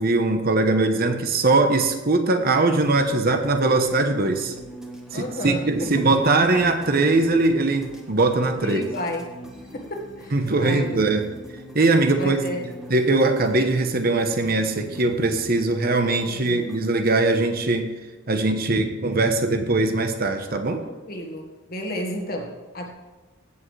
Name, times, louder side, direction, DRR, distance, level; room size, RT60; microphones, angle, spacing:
voice 1, 0.0-4.5 5.1-8.8 10.3-11.3 11.7-12.5 12.9-18.0 18.3-20.8, right 2 dB, 45° right, 7 dB, 0.9 m, -21 dB
sound 1, 2.8-16.8, equal, 5° right, 1.5 m, -42 dB
voice 2, 5.1-6.1 8.6-9.4 9.7-11.0 12.2-12.6 16.3-16.7 20.8-22.9, equal, 45° left, 2 dB, 1.6 m, -32 dB
16.5 x 7.5 x 3.3 m, 1.2 s
head